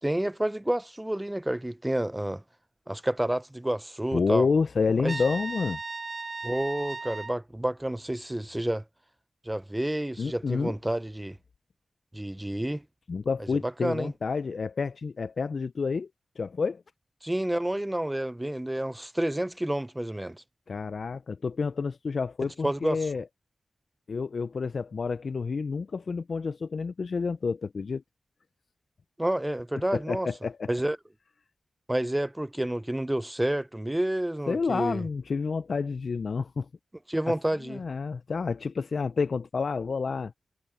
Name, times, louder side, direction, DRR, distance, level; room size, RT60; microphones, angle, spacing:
voice 1, 0.0-2.4 2.9-4.5 5.0-5.1 6.4-8.8 9.5-11.4 12.1-12.8 13.8-14.1 17.2-20.4 22.6-23.0 29.2-30.3 30.7-31.0 31.9-35.0 37.1-37.8, right 1 dB, 10° right, 0.5 m, -29 dB
voice 2, 4.1-5.8 10.2-10.8 13.1-16.1 16.4-16.8 20.7-23.3 24.1-28.0 29.9-30.7 34.5-36.7 37.3-37.4 37.6-40.3, left 5 dB, 65° left, 0.3 m, -29 dB
Trumpet, 5.1-7.4, right 3 dB, 45° right, 1.0 m, -36 dB
wide cardioid pair, 115°, 0 cm